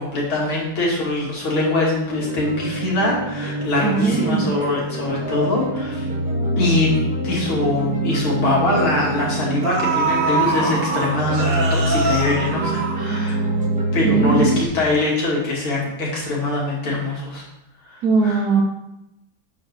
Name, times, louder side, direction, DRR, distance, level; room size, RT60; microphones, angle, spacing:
voice 1, 0.0-6.1 6.6-6.9 7.2-13.4 13.9-17.4 17.8-18.0 18.2-18.4, left 2 dB, 70° left, -4 dB, 3.0 m, -23 dB
sound 1, 2.1-14.7, right 1 dB, 5° right, 1.0 m, -25 dB
voice 2, 3.8-4.5 12.9-13.4 14.0-14.7 18.0-18.6, right 4 dB, 60° right, 0 dB, 1.1 m, -20 dB
sound 2, 9.6-13.6 13.9-14.0, right 3 dB, 80° right, 2.2 m, -23 dB
8.2 x 6.8 x 3.2 m, 0.89 s
omnidirectional pair, 2.4 m